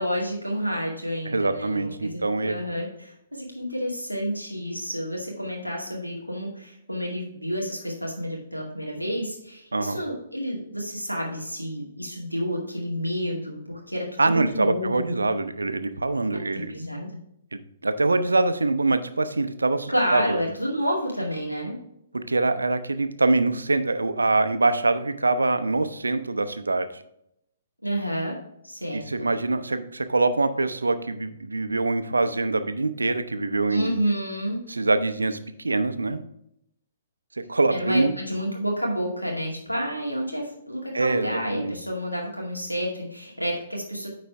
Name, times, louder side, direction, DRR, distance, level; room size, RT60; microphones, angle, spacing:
voice 1, 0.0-15.2 16.5-17.2 19.9-21.8 27.8-28.4 28.6-29.3 33.7-34.6 37.7-44.1, equal, 90° left, -1 dB, 2.1 m, -29 dB
voice 2, 1.3-2.5 9.7-10.0 14.2-16.7 17.5-20.4 22.1-27.0 28.9-33.9 34.7-36.2 37.4-38.1 40.9-41.7, right 3 dB, 75° right, 10 dB, 0.6 m, -24 dB
9.5 x 4.1 x 3.4 m, 0.76 s
figure-of-eight pair, 120°, 0 cm